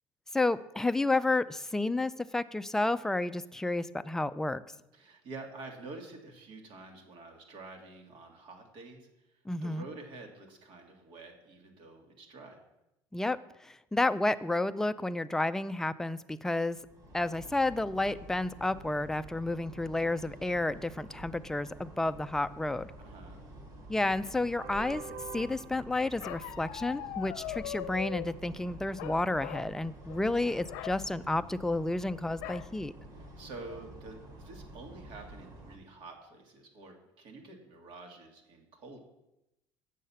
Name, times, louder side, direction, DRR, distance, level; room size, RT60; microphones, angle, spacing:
voice 1, 0.3-4.6 9.5-9.8 13.1-16.8 17.1-22.9 23.9-25.0 25.3-32.9, left 2 dB, 5° left, 12 dB, 0.3 m, -31 dB
voice 2, 4.9-12.6 23.0-23.4 30.3-30.5 33.1-39.0, right 3 dB, 65° right, 2 dB, 1.9 m, -48 dB
sound 1, 16.7-35.8, right 2 dB, 45° right, 1.9 m, -48 dB
Bark, 26.2-28.3 29.0-29.7 30.0-30.3 30.6-31.0 32.4-32.7 33.2-33.3 33.6-34.1, left 13 dB, 80° left, 0.6 m, -40 dB
8.2 x 6.5 x 5.7 m, 0.93 s
supercardioid pair, 100°, 9 cm